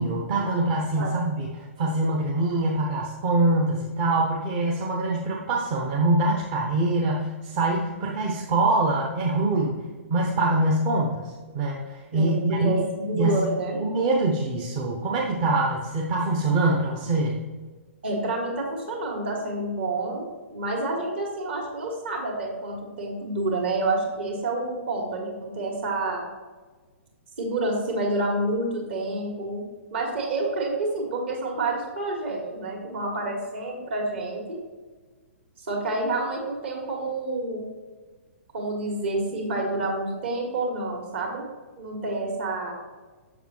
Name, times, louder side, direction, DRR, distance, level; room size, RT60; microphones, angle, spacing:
voice 1, 0.0-9.8 10.1-12.7 13.1-13.4 13.8-17.4, right 2 dB, 35° right, -2 dB, 0.9 m, -24 dB
voice 2, 12.1-13.8 18.0-26.2 27.4-29.6 29.9-34.6 35.6-37.6 38.5-41.4 41.8-42.7, right 2 dB, 55° right, 0 dB, 2.2 m, -28 dB
7.1 x 6.8 x 3.1 m, 1.4 s
figure-of-eight pair, 115°, 7 cm